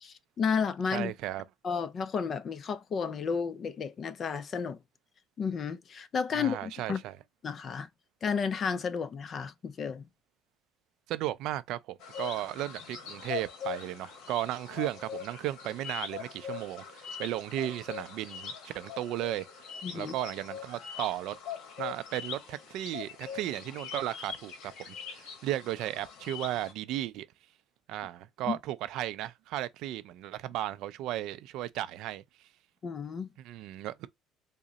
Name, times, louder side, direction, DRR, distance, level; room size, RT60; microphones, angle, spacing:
voice 1, 0.0-1.1 1.6-4.8 5.4-7.0 7.4-7.9 8.2-10.1 19.8-20.1 28.5-28.6 32.8-33.3, left 6 dB, 40° left, 0.4 m, -32 dB
voice 2, 0.9-1.4 6.3-7.2 11.1-19.4 19.9-21.4 21.8-27.3 27.9-32.5 33.4-34.1, right 14 dB, 75° right, 0.3 m, -35 dB
sound 1, 12.0-26.7, left 7 dB, 70° left, 1.0 m, -42 dB
3.6 x 2.1 x 3.8 m
cardioid pair, 100°, 0 cm